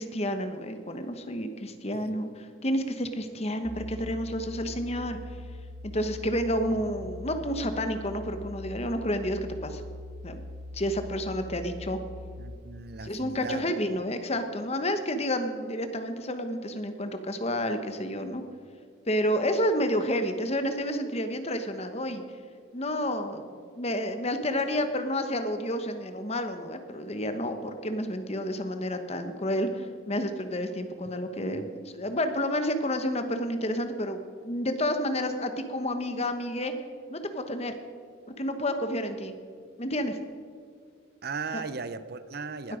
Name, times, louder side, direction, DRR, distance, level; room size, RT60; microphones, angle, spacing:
voice 1, 0.0-5.2 5.8-9.8 10.2-10.4 10.7-12.0 13.0-18.4 19.1-22.2 22.7-36.7 37.1-37.7 38.3-39.3 39.8-40.2 41.5-41.6, equal, 30° left, 1.2 m, -30 dB
sound 1, 3.6-12.5, left 1 dB, 25° right, 2.2 m, -42 dB
voice 2, 12.4-13.7 31.5-31.7 41.2-42.8, right 4 dB, 50° right, 0.6 m, -37 dB
19.5 x 13.0 x 5.1 m
head